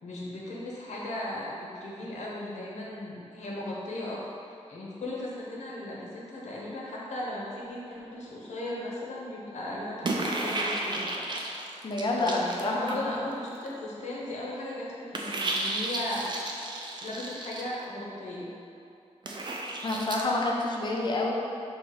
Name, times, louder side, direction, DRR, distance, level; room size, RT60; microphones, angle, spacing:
voice 1, 0.0-4.2 4.7-11.1 12.1-16.2 17.0-18.5, left 1 dB, 90° left, -5 dB, 0.7 m, -37 dB
sound 1, 10.0-13.2 13.5-13.7 15.1-17.7 19.2-20.2, right 2 dB, 40° right, 0.4 m, -33 dB
voice 2, 11.8-13.0 19.8-21.3, left 2 dB, 40° left, -2 dB, 0.5 m, -28 dB
3.0 x 2.8 x 3.8 m, 2.7 s
wide cardioid pair, 120°, 12 cm